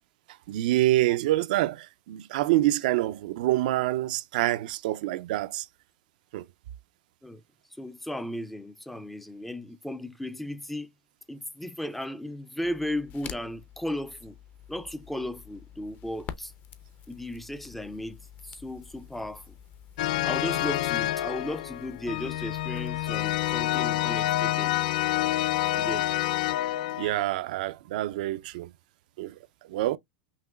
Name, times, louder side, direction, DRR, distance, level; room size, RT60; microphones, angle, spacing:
voice 1, 0.5-5.7 6.3-6.5 27.0-28.7 29.2-29.4 29.7-30.0, right 16 dB, 75° right, 0.4 m, -26 dB
voice 2, 7.8-10.9 11.3-14.3 14.7-16.5 17.1-18.2 18.4-19.5 20.2-24.7 25.7-26.1, left 1 dB, 5° left, 0.4 m, -35 dB
Crackle, 12.6-23.6, left 9 dB, 40° left, 0.7 m, -48 dB
sound 1, 20.0-27.2, left 15 dB, 75° left, 0.3 m, -28 dB
5.7 x 2.8 x 2.2 m
supercardioid pair, 140°, 4 cm